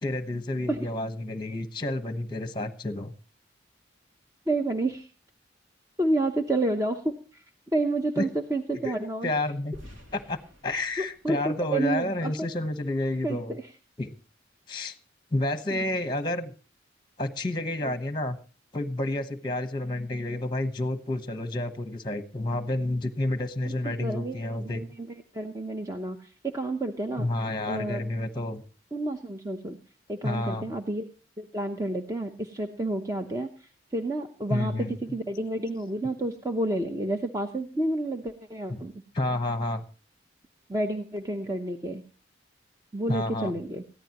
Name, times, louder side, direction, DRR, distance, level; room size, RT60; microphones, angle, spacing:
voice 1, 0.0-3.1 8.2-8.3 8.8-8.9 9.2-9.8 10.1-10.4 10.6-13.6 14.0-14.1 14.7-14.9 15.3-16.5 17.2-18.4 18.7-24.8 27.2-28.6 30.2-30.7 34.5-35.0 38.7-38.8 39.1-39.8 43.1-43.5, left 1 dB, 25° left, 10 dB, 1.1 m, -30 dB
voice 2, 4.5-5.1 6.0-7.4 7.7-9.3 11.0-12.3 13.2-13.7 15.7-15.8 23.6-27.3 27.7-28.0 28.9-29.8 30.1-31.1 31.4-38.9 40.7-42.0 42.9-43.8, right 2 dB, 15° right, 4 dB, 0.8 m, -30 dB
sound 1, 9.7-12.7, left 1 dB, 85° right, 3.0 m, -51 dB
20.0 x 14.5 x 3.0 m, 0.36 s
head